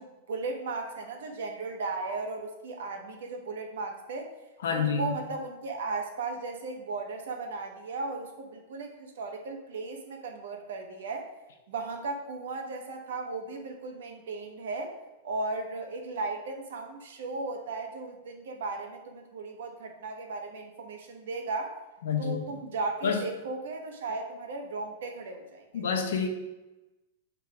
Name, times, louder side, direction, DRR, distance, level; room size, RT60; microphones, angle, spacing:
voice 1, 0.0-4.3 4.7-11.3 11.7-15.0 15.2-21.8 22.2-25.8, right 3 dB, 75° right, 3 dB, 1.1 m, -36 dB
voice 2, 4.6-5.1 22.0-22.4 23.0-23.2 25.7-26.3, left 6 dB, 80° left, 4 dB, 1.0 m, -28 dB
6.8 x 3.7 x 4.8 m, 1.0 s
supercardioid pair, 175°, 0 cm